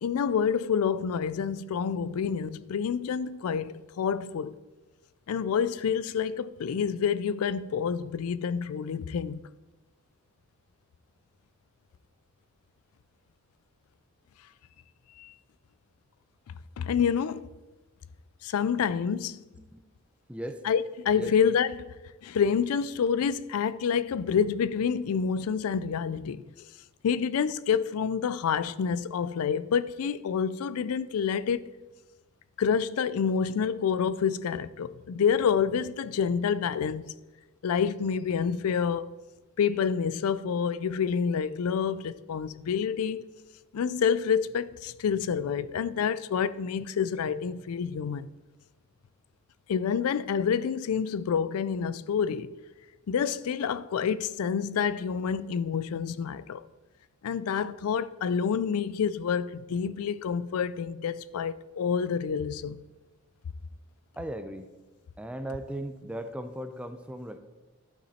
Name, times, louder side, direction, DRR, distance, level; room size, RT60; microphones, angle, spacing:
voice 1, 0.0-4.5 5.3-9.4 15.2-15.3 16.8-17.5 18.4-19.4 20.6-21.9 22.2-26.4 27.0-31.7 32.6-37.1 37.6-39.0 39.6-43.2 43.7-48.3 49.7-52.5 53.1-56.6 57.2-62.8, left 7 dB, 90° left, 0.4 m, -28 dB
voice 2, 19.6-19.9 20.3-20.6 21.1-21.3 64.2-64.7 65.2-67.4, right 1 dB, 5° right, 0.5 m, -37 dB
12.0 x 6.0 x 4.2 m
head